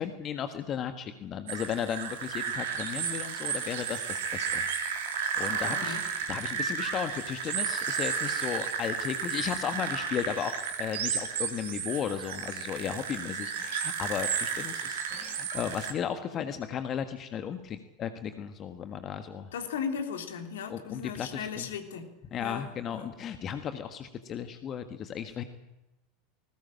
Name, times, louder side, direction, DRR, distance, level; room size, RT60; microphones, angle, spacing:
voice 1, 0.0-4.7 5.4-19.5 20.7-21.7 22.3-25.4, left 8 dB, 35° left, 9 dB, 1.6 m, -35 dB
sound 1, 1.5-15.9, right 6 dB, 65° right, 3.4 m, -33 dB
voice 2, 5.6-6.0 19.5-22.1 22.4-22.6 22.9-23.1, left 7 dB, 70° left, 6 dB, 3.2 m, -36 dB
20.0 x 19.5 x 8.9 m, 0.98 s
figure-of-eight pair, 80°, 0 cm